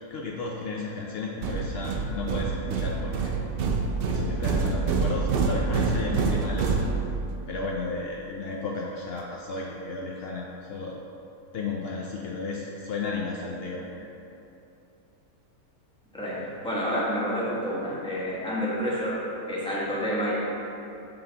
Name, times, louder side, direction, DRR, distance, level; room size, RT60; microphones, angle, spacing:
voice 1, 0.1-3.4 4.1-6.8 7.5-11.0 11.5-14.1, left 3 dB, 80° left, -2 dB, 0.5 m, -33 dB
sound 1, 1.4-7.4, right 4 dB, 85° right, 0.5 m, -27 dB
voice 2, 16.6-19.2 19.5-20.3, equal, 5° left, -7 dB, 1.0 m, -28 dB
7.7 x 3.9 x 3.8 m, 2.8 s
omnidirectional pair, 1.6 m